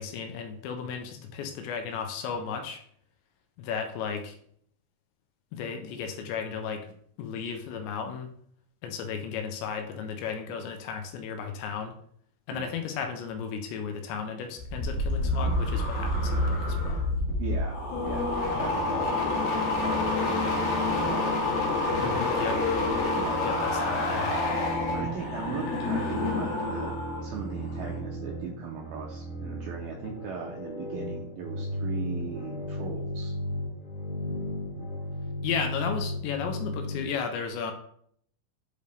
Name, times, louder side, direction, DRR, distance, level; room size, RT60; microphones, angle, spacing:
voice 1, 0.0-2.8 3.6-4.4 5.5-6.9 7.2-8.3 8.8-12.0 12.5-17.0 22.0-22.6 23.4-24.4 35.4-37.7, left 6 dB, 85° left, 6 dB, 2.9 m, -34 dB
sound 1, 14.6-27.3 27.6-28.0, left 2 dB, 65° left, 2.9 m, -28 dB
voice 2, 17.4-18.3 18.6-19.2 19.8-20.6 21.0-21.3 23.1-23.5 24.9-27.0 27.2-33.3, right 6 dB, 90° right, 0 dB, 2.1 m, -38 dB
sound 2, 18.6-37.1, equal, 45° left, 1.8 m, -36 dB
7.9 x 5.3 x 3.4 m, 0.64 s
omnidirectional pair, 5.3 m